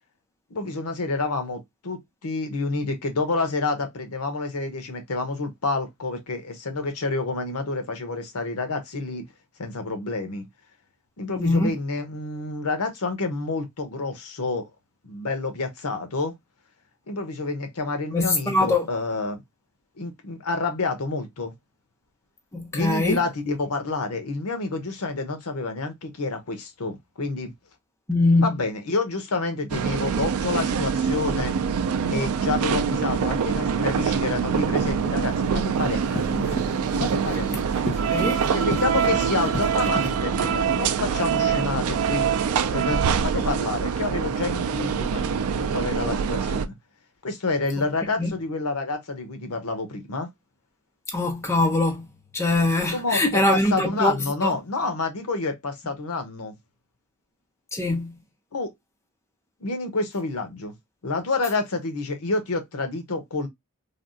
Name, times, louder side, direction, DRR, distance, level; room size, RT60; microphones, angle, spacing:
voice 1, 0.5-9.2 9.6-10.5 11.2-14.7 15.0-16.3 17.1-19.4 20.0-21.5 22.7-27.5 28.4-31.6 32.1-36.6 37.0-37.7 38.5-42.3 42.7-46.8 47.2-50.3 52.9-56.5 58.5-58.7 59.6-60.7 61.0-63.5, left 3 dB, 80° left, 0.8 m, -28 dB
voice 2, 11.4-11.8 18.1-18.9 22.5-23.2 28.1-28.6 37.5-37.6 38.1-38.5 48.2-48.3 51.1-52.1 52.3-54.6 57.7-58.1, left 2 dB, 10° left, 0.5 m, -22 dB
sound 1, 29.7-46.7, right 7 dB, 75° right, 0.4 m, -24 dB
Run, 35.3-40.1, equal, 30° left, 0.9 m, -34 dB
3.3 x 2.3 x 2.5 m
head